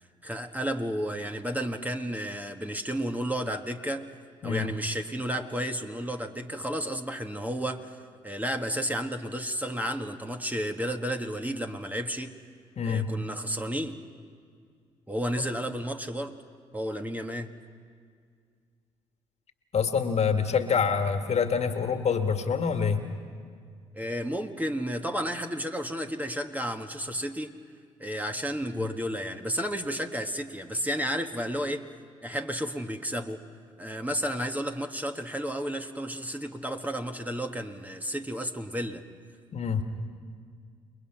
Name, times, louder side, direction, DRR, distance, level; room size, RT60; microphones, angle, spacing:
voice 1, 0.2-4.1 4.4-12.3 12.8-14.0 15.1-16.4 16.7-17.5 23.9-27.5 28.0-31.8 32.2-33.4 33.8-39.0, equal, 10° right, 5 dB, 1.7 m, -32 dB
voice 2, 12.8-13.1 19.7-23.0 28.7-28.9 39.5-39.8, left 6 dB, 50° left, 6 dB, 1.9 m, -26 dB
29.5 x 21.0 x 5.9 m, 2.1 s
hypercardioid pair, 45°, 15 cm